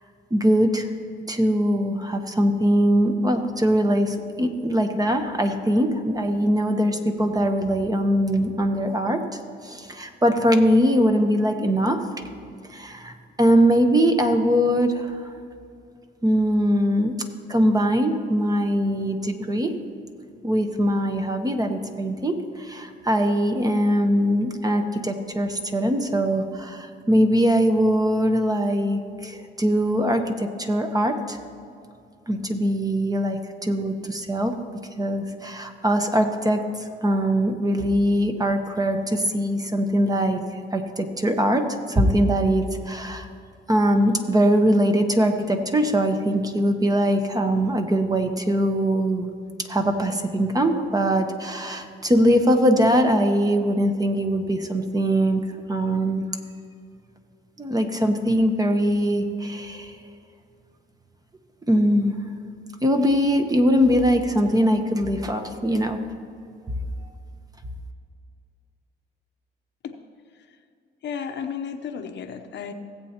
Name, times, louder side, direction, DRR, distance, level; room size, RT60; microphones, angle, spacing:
voice 1, 0.3-0.9 1.3-9.2 9.6-12.0 12.7-15.3 16.2-17.2 17.5-19.7 20.4-31.4 32.3-34.5 35.0-40.4 40.7-43.3 43.7-49.3 49.7-55.4 55.7-56.2 57.6-60.0 61.7-62.2 62.8-66.0, equal, 20° right, 6 dB, 0.9 m, -22 dB
voice 2, 71.0-72.7, left 7 dB, 60° left, 6 dB, 0.8 m, -33 dB
17.5 x 7.8 x 2.9 m, 2.5 s
cardioid pair, 90°, 20 cm